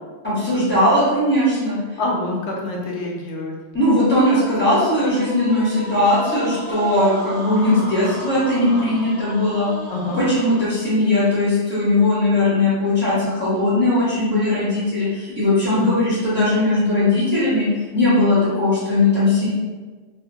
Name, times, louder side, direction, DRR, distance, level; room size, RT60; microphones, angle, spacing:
voice 1, 0.2-1.8 3.7-9.7 10.2-17.7 17.9-19.5, left 1 dB, 10° left, -11 dB, 1.2 m, -19 dB
voice 2, 2.0-3.5 9.9-10.2 15.7-16.0, left 2 dB, 85° left, -2 dB, 0.9 m, -25 dB
sound 1, 4.6-10.9, equal, 35° right, 0.5 m, -34 dB
2.4 x 2.4 x 2.7 m, 1.3 s
omnidirectional pair, 1.2 m